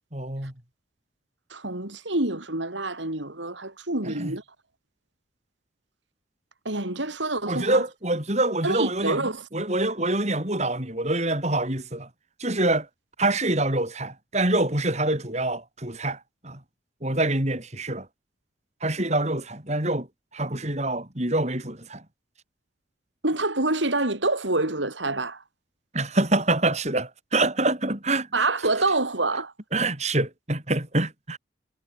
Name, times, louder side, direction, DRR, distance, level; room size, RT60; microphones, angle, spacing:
voice 1, 0.1-0.5 4.0-4.3 7.5-12.1 12.4-12.9 13.2-16.6 17.0-18.1 18.8-20.1 20.3-22.0 25.9-28.3 29.7-31.4, right 2 dB, 35° right, 5.0 m, -26 dB
voice 2, 1.5-4.4 6.7-7.8 8.6-9.5 23.2-25.4 28.3-29.5, right 2 dB, 85° right, 5.6 m, -26 dB
head